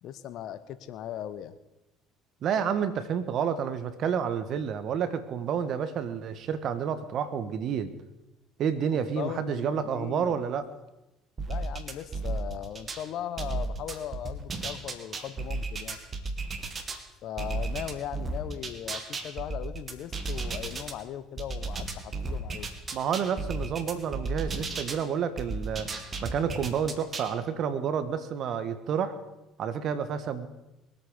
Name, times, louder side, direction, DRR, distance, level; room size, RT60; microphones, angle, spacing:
voice 1, 0.0-1.5 8.9-10.4 11.5-16.0 17.2-22.7, left 10 dB, 60° left, 13 dB, 1.0 m, -38 dB
voice 2, 2.4-7.9 8.6-10.7 22.9-25.9 26.2-29.2 29.6-30.5, right 7 dB, 55° right, 11 dB, 1.5 m, -29 dB
sound 1, 11.4-13.0 13.4-17.0 17.4-20.9 21.4-25.0 25.4-27.3, right 3 dB, 35° right, 2.2 m, -34 dB
22.5 x 8.7 x 5.2 m, 0.95 s
hypercardioid pair, 65°, 0 cm